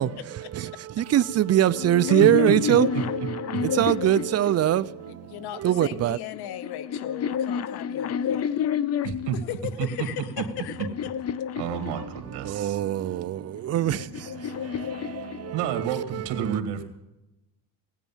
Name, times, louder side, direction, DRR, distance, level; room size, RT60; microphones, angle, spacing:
voice 1, 0.0-6.2 11.6-16.6, right 12 dB, 40° right, 0.5 m, -24 dB
sound 1, 1.7-5.1 6.0-9.4 10.1-12.5 13.5-16.0, left 8 dB, 40° left, 0.6 m, -30 dB
voice 2, 5.3-8.7 9.3-11.1 12.0-12.1, left 11 dB, 65° left, 1.1 m, -37 dB
voice 3, 9.0-9.4 9.8-10.1 10.4-10.5 10.8-10.9 11.6-12.8 15.5-16.8, right 9 dB, 80° right, 2.3 m, -29 dB
16.5 x 9.2 x 7.3 m
cardioid pair, 125°, 41 cm